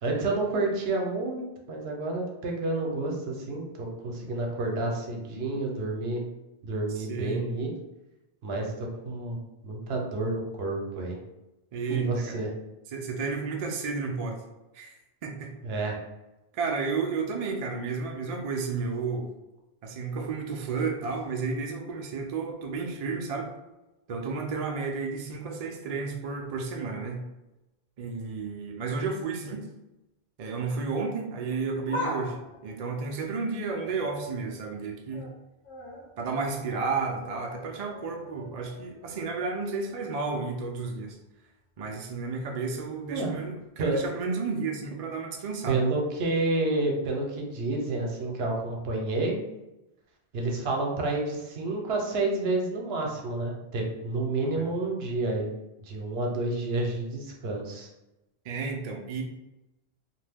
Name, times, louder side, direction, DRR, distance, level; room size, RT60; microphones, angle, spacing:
voice 1, 0.0-6.2 6.6-7.7 8.4-9.4 9.6-11.2 11.9-12.5 15.6-16.0 43.1-43.3 43.8-44.0 45.7-49.4 50.3-55.5 55.8-57.9, right 2 dB, 75° right, 0 dB, 0.9 m, -29 dB
voice 2, 6.9-7.5 11.7-12.4 12.9-14.4 14.7-14.9 15.2-15.5 16.5-19.3 19.8-23.5 24.1-27.3 28.0-29.7 30.4-32.4 32.6-35.3 36.2-41.2 41.8-45.8 54.6-54.7 58.4-59.2, right 4 dB, 55° right, 2 dB, 0.4 m, -32 dB
sound 1, 31.9-34.5 34.9-35.3 35.6-39.6 39.9-40.0 41.0-41.1, left 1 dB, 40° left, 0.6 m, -41 dB
2.5 x 2.2 x 3.3 m, 0.96 s
omnidirectional pair, 1.1 m